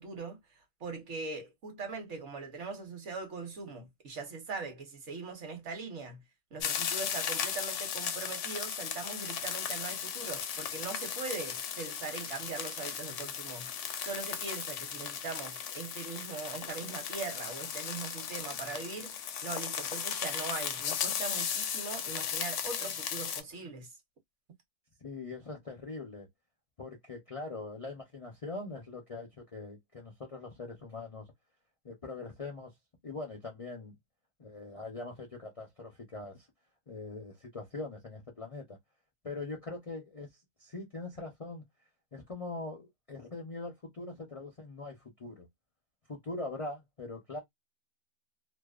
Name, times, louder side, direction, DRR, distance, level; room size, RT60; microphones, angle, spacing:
voice 1, 0.0-6.2 6.5-23.9, right 4 dB, 55° right, 1.0 m, -41 dB
sound 1, 6.6-23.4, left 8 dB, 70° left, 0.8 m, -36 dB
voice 2, 25.0-26.3 26.8-31.3 31.8-32.7 33.0-33.9 34.4-36.5 36.9-38.8 39.2-40.3 40.6-41.7 42.1-45.5 46.1-47.4, left 3 dB, 45° left, 0.4 m, -42 dB
2.6 x 2.0 x 2.3 m
omnidirectional pair, 1.6 m